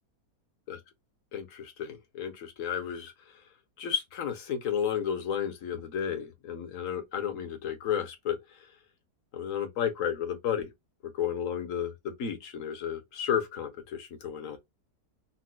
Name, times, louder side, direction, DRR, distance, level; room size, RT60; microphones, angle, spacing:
voice 1, 1.3-3.1 3.8-8.4 9.3-10.7 11.0-14.6, left 8 dB, 60° left, 1.1 m, -32 dB
4.0 x 2.2 x 2.2 m
omnidirectional pair, 1.7 m